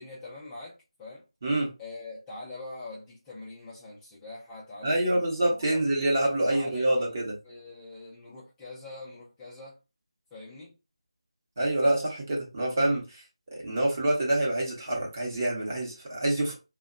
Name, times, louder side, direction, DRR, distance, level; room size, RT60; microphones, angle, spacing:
voice 1, 0.0-1.3 1.8-5.2 5.6-5.8 6.5-7.2 7.4-9.8 10.3-10.8, left 2 dB, 5° left, 0.5 m, -43 dB
voice 2, 4.8-7.4 11.6-13.2 13.6-16.5, right 1 dB, 30° right, 0.9 m, -26 dB
2.7 x 2.2 x 2.5 m
figure-of-eight pair, 170°, 3 cm